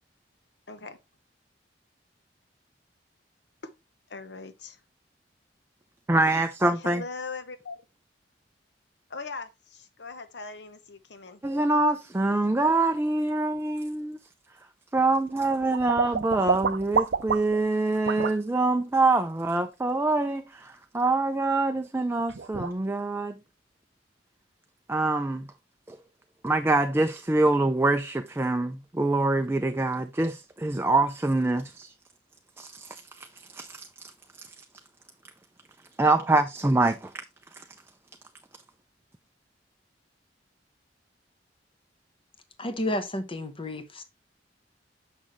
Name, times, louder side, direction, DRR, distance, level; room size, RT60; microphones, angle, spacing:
voice 1, 0.7-1.0 3.6-3.7 4.1-4.8 6.7-7.8 9.1-11.4, left 4 dB, 65° left, 0.9 m, -40 dB
voice 2, 6.1-7.0 11.4-14.2 14.9-23.4 24.9-25.5 25.9-26.0 26.4-31.9 32.6-33.3 33.5-33.9 36.0-37.1 37.6-37.7, right 2 dB, 15° right, 0.4 m, -25 dB
sound 1, 15.0-17.7 18.1-18.4 21.9-22.0 22.3-22.7, right 6 dB, 65° right, 0.5 m, -28 dB
voice 3, 42.6-44.0, left 1 dB, 30° left, 1.0 m, -31 dB
6.3 x 6.2 x 3.0 m
head